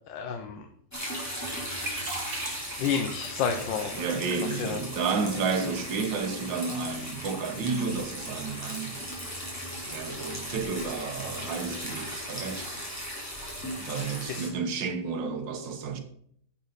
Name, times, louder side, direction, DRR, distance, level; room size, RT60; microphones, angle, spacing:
voice 1, 0.1-0.7 1.0-1.1 2.8-4.1 4.4-4.8 13.8-14.5, left 6 dB, 85° left, 1.5 m, -31 dB
sound 1, 0.9-14.5, equal, 10° left, 2.9 m, -37 dB
sound 2, 1.6-13.0, right 2 dB, 45° right, 2.4 m, -45 dB
voice 2, 4.0-9.0 9.9-12.7 13.8-16.0, right 5 dB, 85° right, 1.9 m, -31 dB
10.0 x 7.9 x 4.0 m
omnidirectional pair, 2.0 m